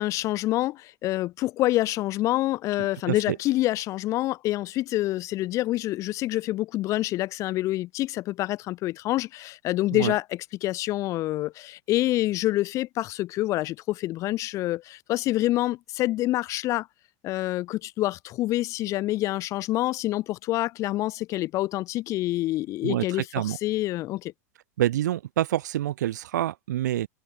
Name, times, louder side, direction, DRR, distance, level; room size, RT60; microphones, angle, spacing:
voice 1, 0.0-10.2 10.6-16.9 17.2-24.3, left 16 dB, 35° left, 5.5 m, -27 dB
voice 2, 22.8-23.6 24.8-27.1, right 13 dB, 85° right, 6.9 m, -27 dB
supercardioid pair, 155°, 9 cm